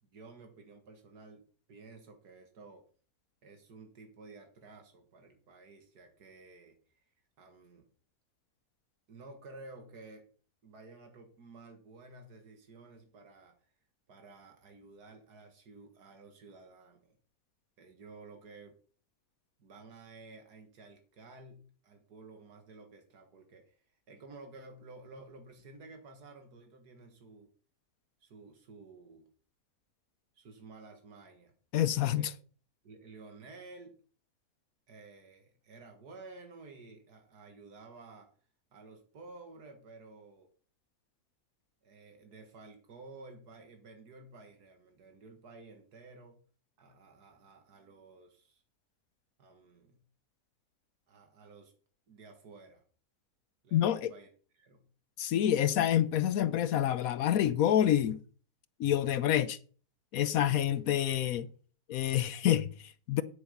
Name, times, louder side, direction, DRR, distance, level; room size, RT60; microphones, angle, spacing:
voice 1, 0.0-1.4 1.7-2.8 3.4-7.1 7.4-7.9 9.1-10.3 10.6-13.7 14.1-17.2 17.8-18.8 19.6-27.5 28.2-29.3 30.3-31.5 32.0-32.3 32.8-34.0 34.9-38.3 38.7-40.5 41.8-46.4 46.8-48.6 49.4-50.0 51.1-51.7 52.1-52.8 53.6-54.9 60.3-60.7, right 3 dB, 85° right, 2.2 m, -53 dB
voice 2, 31.7-32.3 53.7-54.1 55.2-58.2 58.8-59.6 60.1-61.5 61.9-63.2, left 11 dB, 70° left, 1.1 m, -27 dB
9.6 x 8.3 x 5.4 m
omnidirectional pair, 1.7 m